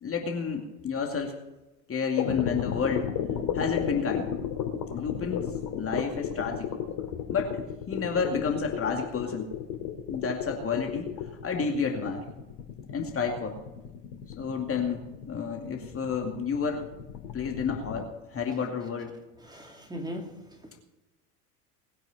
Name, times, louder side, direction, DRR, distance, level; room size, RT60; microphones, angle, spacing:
voice 1, 0.0-1.4 1.9-3.1 3.5-4.3 4.9-6.7 7.3-9.5 10.1-11.1 11.4-12.2 12.9-13.6 14.4-16.9 17.3-19.2, left 5 dB, 25° left, 2 dB, 2.4 m, -30 dB
sound 1, 2.2-18.0, left 9 dB, 50° left, 2.8 m, -33 dB
voice 2, 19.4-20.7, equal, 10° right, 2 dB, 3.1 m, -39 dB
20.0 x 9.2 x 5.8 m, 1.0 s
figure-of-eight pair, 75°, 48 cm